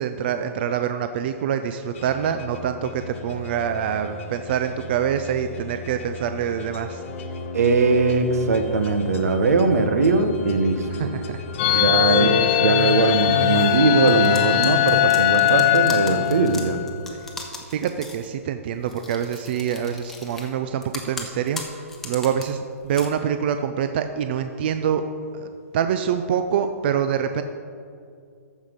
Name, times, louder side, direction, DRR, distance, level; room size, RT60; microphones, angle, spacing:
voice 1, 0.0-7.0 10.9-12.8 17.2-17.3 17.7-25.0 25.3-27.4, right 8 dB, 40° right, 9 dB, 0.5 m, -26 dB
sound 1, 1.9-12.6, left 4 dB, 55° left, 1.1 m, -36 dB
voice 2, 7.5-11.1 11.7-16.8, right 3 dB, 75° right, 8 dB, 1.1 m, -20 dB
sound 2, 11.6-17.0, left 14 dB, 35° left, 0.4 m, -20 dB
sound 3, 14.1-18.3 18.9-20.5 20.8-22.4 22.8-23.1, left 3 dB, 5° left, 0.9 m, -37 dB
14.0 x 5.6 x 5.2 m, 2.4 s
hypercardioid pair, 155°, 8 cm